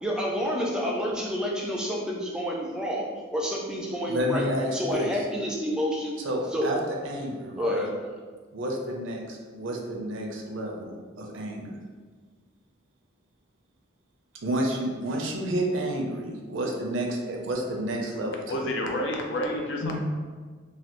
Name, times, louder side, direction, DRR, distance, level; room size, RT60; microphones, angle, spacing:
voice 1, 0.0-6.2 6.5-6.7 7.6-7.9, equal, 5° right, -3 dB, 0.3 m, -29 dB
voice 2, 4.1-5.3 6.2-7.9 8.5-11.8 14.4-18.4, right 1 dB, 75° right, 1 dB, 0.5 m, -30 dB
voice 3, 18.5-20.2, left 1 dB, 70° left, 1 dB, 0.5 m, -29 dB
3.2 x 2.3 x 2.9 m, 1.5 s
head